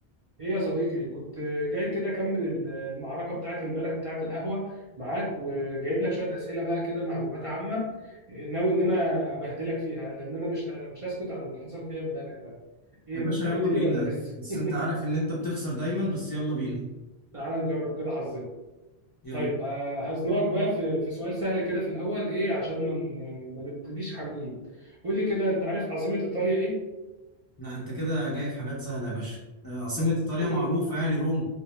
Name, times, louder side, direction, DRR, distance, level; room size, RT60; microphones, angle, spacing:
voice 1, 0.4-12.5 13.1-14.2 14.5-14.8 17.3-18.5 19.3-24.5 24.8-26.8 30.0-30.1 30.4-30.7, equal, 45° right, -7 dB, 0.5 m, -30 dB
voice 2, 13.1-14.1 14.4-16.8 19.2-19.5 27.6-29.4 29.6-31.5, left 1 dB, 35° left, -8 dB, 0.4 m, -29 dB
2.2 x 2.1 x 2.9 m, 1.1 s
omnidirectional pair, 1.0 m